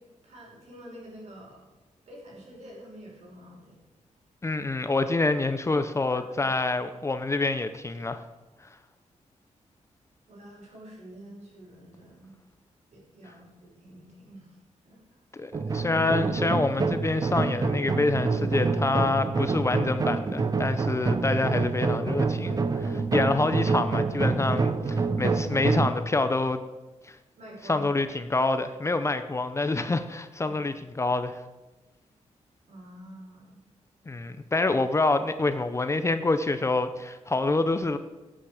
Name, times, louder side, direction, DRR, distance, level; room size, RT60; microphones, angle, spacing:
voice 1, 0.0-1.6 2.1-3.8 6.1-6.5 10.3-12.3 12.9-14.6 14.8-15.2 27.4-27.9 32.7-33.6, right 1 dB, 65° right, -3 dB, 5.5 m, -47 dB
voice 2, 4.4-8.2 15.3-26.6 27.0-27.2 27.6-31.4 34.1-38.0, left 3 dB, 25° left, 10 dB, 0.6 m, -27 dB
sound 1, 15.5-25.9, right 4 dB, 30° right, 0.7 m, -27 dB
18.0 x 8.8 x 5.0 m, 1.1 s
wide cardioid pair, 135°, 12 cm